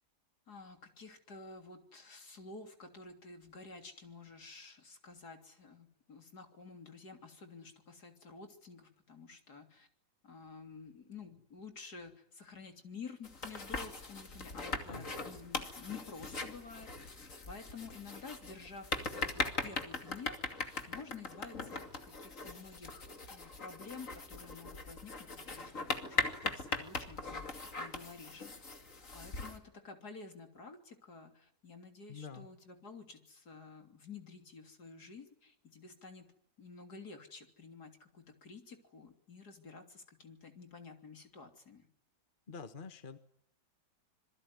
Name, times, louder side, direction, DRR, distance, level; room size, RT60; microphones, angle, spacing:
voice 1, 0.5-9.9 10.2-16.9 17.5-28.6 29.1-36.3 36.6-41.9, left 4 dB, 65° left, 5 dB, 3.7 m, -51 dB
sound 1, 13.2-29.6, left 3 dB, 45° left, 3.0 m, -40 dB
voice 2, 32.1-32.5 42.5-43.2, left 5 dB, 30° left, 9 dB, 1.5 m, -46 dB
26.5 x 22.0 x 9.8 m, 0.69 s
omnidirectional pair, 1.8 m